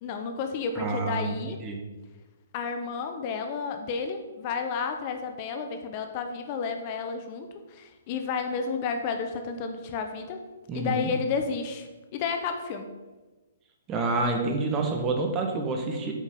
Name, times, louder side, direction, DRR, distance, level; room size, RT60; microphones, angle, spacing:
voice 1, 0.0-1.6 2.5-10.4 10.7-12.9, left 5 dB, 35° left, 6 dB, 0.8 m, -31 dB
voice 2, 0.7-1.3 1.6-1.8 10.7-11.0 13.9-16.1, right 3 dB, 25° right, 3 dB, 1.5 m, -28 dB
8.5 x 5.0 x 5.3 m, 1.2 s
figure-of-eight pair, 125°, 0 cm